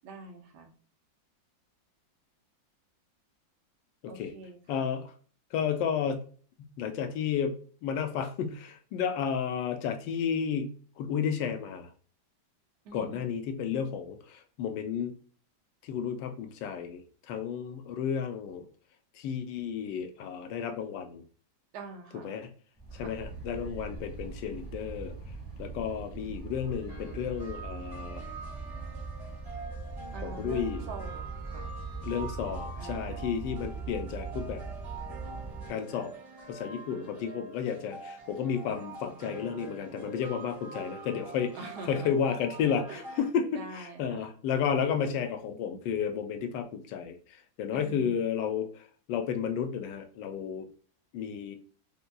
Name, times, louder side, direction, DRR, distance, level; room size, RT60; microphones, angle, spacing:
voice 1, 0.0-0.7 4.1-4.8 12.9-13.3 21.7-22.3 22.9-23.2 30.1-31.7 32.8-33.4 41.5-42.1 42.9-43.0 43.5-44.3 47.7-48.2, right 3 dB, 70° right, 5 dB, 1.1 m, -45 dB
voice 2, 4.7-5.1 5.5-6.2 6.6-7.5 7.8-11.9 12.9-15.1 15.8-17.0 17.3-18.6 19.2-21.2 22.2-22.5 22.9-25.1 25.6-28.2 30.2-30.8 32.0-34.6 35.7-36.1 36.5-41.6 41.8-48.8 49.1-50.7 51.1-51.6, left 7 dB, 75° left, 7 dB, 1.1 m, -32 dB
sound 1, 22.8-35.7, right 4 dB, 5° right, 1.0 m, -40 dB
sound 2, 26.9-43.3, right 3 dB, 40° right, 1.4 m, -45 dB
5.3 x 2.2 x 2.2 m, 0.43 s
omnidirectional pair, 2.1 m